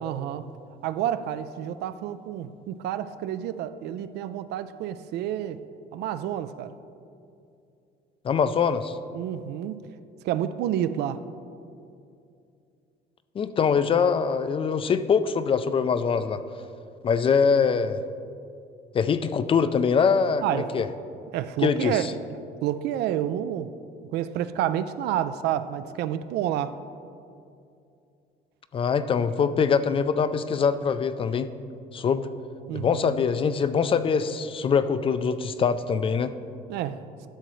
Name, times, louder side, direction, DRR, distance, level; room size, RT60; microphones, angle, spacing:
voice 1, 0.0-0.5 0.8-5.6 5.9-6.7 9.1-9.8 10.2-11.2 20.4-20.7 21.3-22.1 22.6-23.7 24.1-26.7 32.7-33.2 36.7-37.0, right 11 dB, 80° right, 13 dB, 0.4 m, -29 dB
voice 2, 8.2-9.0 13.4-16.4 17.0-18.0 18.9-20.9 21.6-22.1 28.7-31.5 31.9-32.3 32.7-36.3, left 6 dB, 30° left, 12 dB, 0.3 m, -23 dB
11.5 x 6.7 x 3.1 m, 2.5 s
cardioid pair, 110°, 17 cm